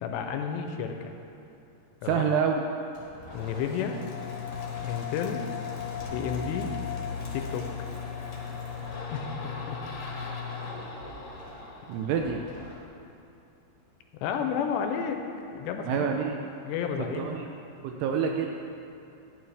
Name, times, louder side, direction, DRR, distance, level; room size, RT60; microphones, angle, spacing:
voice 1, 0.0-1.1 2.0-2.2 3.3-4.0 4.7-5.6 6.1-6.8 7.3-7.7 9.1-9.3 9.7-9.8 14.2-15.2 15.5-16.1 16.6-17.5, left 7 dB, 85° left, 5 dB, 2.7 m, -31 dB
voice 2, 2.0-2.6 11.9-12.4 15.9-16.4 17.0-17.5 17.8-18.5, right 7 dB, 80° right, 3 dB, 2.4 m, -27 dB
sound 1, 2.7-3.8 4.1-7.7 8.1-10.4 10.7-12.7, right 1 dB, 35° right, 2.9 m, -50 dB
sound 2, 3.2-12.8, left 6 dB, 65° left, 1.7 m, -37 dB
sound 3, 6.0-11.4, left 5 dB, 65° right, 1.5 m, -43 dB
11.5 x 10.5 x 3.4 m, 2.7 s
omnidirectional pair, 5.2 m